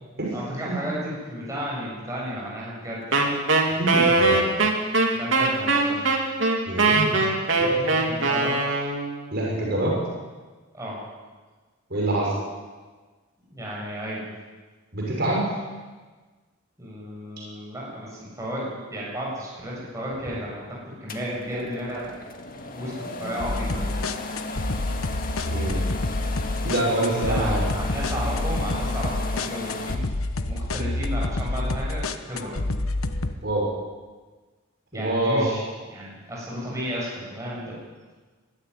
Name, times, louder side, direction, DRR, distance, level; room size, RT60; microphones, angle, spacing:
voice 1, 0.3-3.2 5.1-6.1 8.1-8.8 10.7-11.0 13.5-14.3 16.8-22.1 22.6-24.1 27.1-30.0 30.4-32.6 34.9-35.6 35.9-37.8, equal, 15° right, -5 dB, 7.4 m, -33 dB
Wind instrument woodwind instrument, 3.1-9.2, right 3 dB, 65° right, 3.0 m, -21 dB
voice 2, 3.7-4.6 6.6-7.2 7.6-8.0 9.3-10.0 11.9-12.3 14.9-15.5 25.5-25.8 26.6-27.6 33.4-33.6 34.9-35.5, right 1 dB, 50° right, -3 dB, 6.0 m, -25 dB
sound 1, 21.1-29.9, left 3 dB, 40° left, 1.8 m, -35 dB
sound 2, 23.4-33.3, left 2 dB, 90° left, 1.2 m, -28 dB
21.5 x 13.5 x 9.8 m, 1.3 s
head